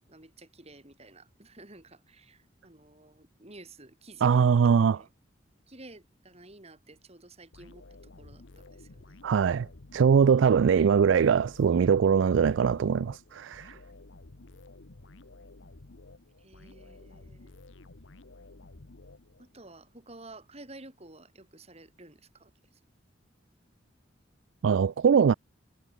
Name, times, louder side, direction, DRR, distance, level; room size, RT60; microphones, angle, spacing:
voice 1, 0.1-4.4 4.6-5.1 5.7-9.2 13.7-13.8 16.4-17.5 19.4-22.5, right 2 dB, 35° right, 5.1 m, -52 dB
voice 2, 4.2-5.0 9.2-9.7 9.9-13.8 24.6-25.3, right 6 dB, 80° right, 0.4 m, -22 dB
sound 1, 7.5-19.7, left 2 dB, 80° left, 1.4 m, -52 dB
head